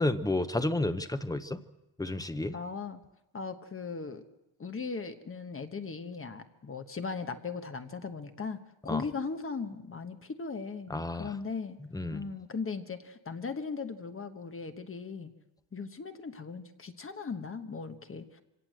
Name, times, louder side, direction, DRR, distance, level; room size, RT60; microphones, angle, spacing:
voice 1, 0.0-1.6 2.0-2.6 8.9-9.0 10.9-11.3 11.9-12.2, left 2 dB, 10° left, 10 dB, 0.7 m, -31 dB
voice 2, 2.5-3.0 3.3-4.2 4.6-8.6 8.8-11.8 12.1-15.3 15.7-18.4, left 4 dB, 30° left, 8 dB, 1.2 m, -38 dB
24.5 x 17.5 x 7.7 m, 0.96 s
wide cardioid pair, 175°, 44 cm